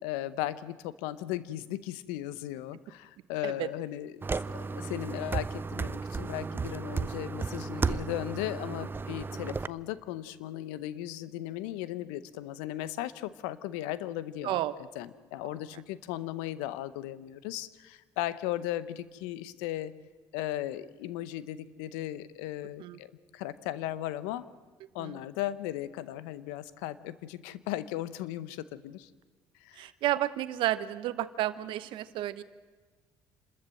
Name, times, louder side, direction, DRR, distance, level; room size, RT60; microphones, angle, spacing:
voice 1, 0.0-14.6 14.9-19.9 20.3-23.1 23.3-24.5 24.9-29.1 29.6-29.9, left 13 dB, 85° left, 16 dB, 0.8 m, -36 dB
sound 1, 4.2-9.7, right 4 dB, 25° right, 0.5 m, -34 dB
voice 2, 29.8-32.4, right 14 dB, 70° right, 14 dB, 1.0 m, -31 dB
27.5 x 13.5 x 7.6 m, 1.4 s
supercardioid pair, 70°, 9 cm